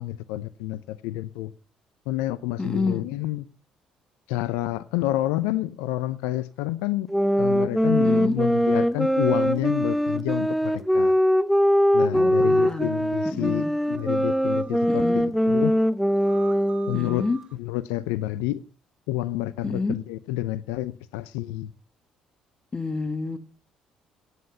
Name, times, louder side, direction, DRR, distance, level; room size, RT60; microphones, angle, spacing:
voice 1, 0.0-1.5 2.1-3.4 4.3-7.1 7.4-11.1 11.9-15.7 16.9-17.2 17.6-18.6 19.1-21.7, left 15 dB, 80° left, 0.6 m, -29 dB
voice 2, 2.6-3.1 8.0-8.4 12.1-12.9 13.2-13.7 14.9-15.3 16.9-17.4 19.6-20.0 22.7-23.4, left 3 dB, 30° left, 1.9 m, -29 dB
sound 1, 7.1-17.1, equal, ahead, 0.9 m, -22 dB
sound 2, 12.2-12.9 13.9-15.1 16.1-17.5, right 7 dB, 45° right, 1.2 m, -46 dB
14.5 x 10.0 x 5.5 m
hypercardioid pair, 55°, 3 cm